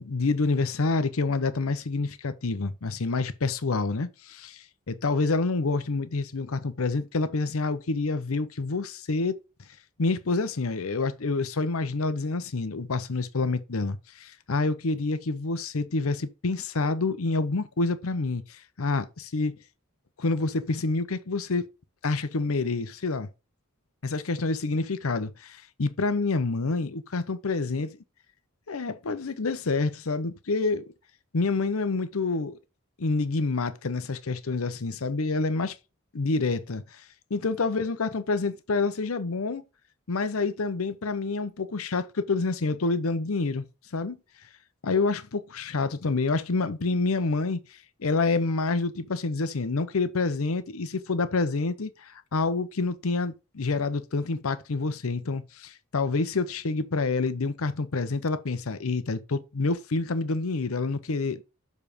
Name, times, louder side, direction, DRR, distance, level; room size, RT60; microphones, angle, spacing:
voice 1, 0.0-9.4 10.0-19.6 20.2-21.7 22.0-23.3 24.1-28.0 28.7-30.9 31.3-32.6 33.0-35.8 36.1-37.0 37.3-39.6 40.1-43.7 43.9-44.2 44.8-61.4, left 3 dB, 70° left, 0.7 m, -28 dB
7.1 x 4.1 x 5.0 m
head